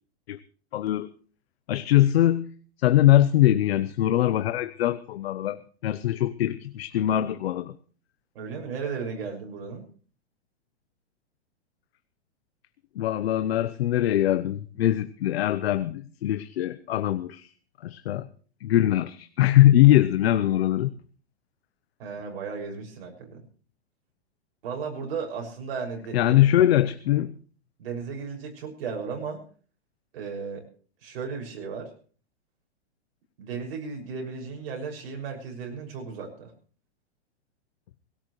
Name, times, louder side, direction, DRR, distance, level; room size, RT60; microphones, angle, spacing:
voice 1, 0.7-1.1 1.7-2.5 2.8-7.7 13.0-17.5 17.8-18.3 18.6-20.9 26.1-27.3, left 13 dB, 65° left, 13 dB, 0.9 m, -22 dB
voice 2, 8.3-9.8 22.0-23.4 24.6-26.4 27.8-29.4 30.1-30.6 31.0-31.9 33.4-36.5, right 5 dB, 55° right, 2 dB, 6.2 m, -35 dB
19.5 x 17.5 x 3.2 m, 0.41 s
hypercardioid pair, 160°, 34 cm